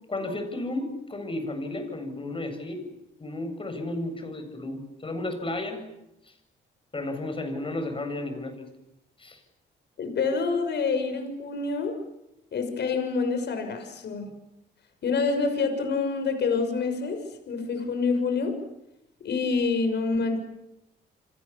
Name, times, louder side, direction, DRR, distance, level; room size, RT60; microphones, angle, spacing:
voice 1, 0.1-2.9 3.2-5.8 6.9-8.7 9.2-9.4, left 2 dB, 25° left, 7 dB, 7.9 m, -33 dB
voice 2, 10.0-11.9 12.5-14.2 15.0-17.2 17.5-18.5 19.2-20.4, left 4 dB, 60° left, 7 dB, 6.4 m, -27 dB
29.5 x 25.5 x 7.2 m, 0.86 s
cardioid pair, 90°, 20 cm